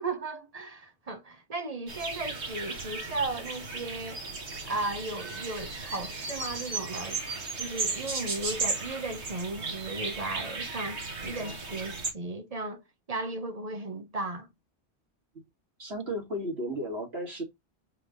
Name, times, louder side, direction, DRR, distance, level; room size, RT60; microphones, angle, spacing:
voice 1, 0.0-4.2 4.7-7.2 7.6-12.8 13.1-14.5, right 2 dB, 40° right, 0.9 m, -36 dB
sound 1, 1.9-12.1, right 3 dB, 85° right, 1.7 m, -35 dB
voice 2, 15.8-17.4, equal, 65° right, 2.9 m, -34 dB
5.8 x 3.5 x 4.6 m
omnidirectional pair, 1.1 m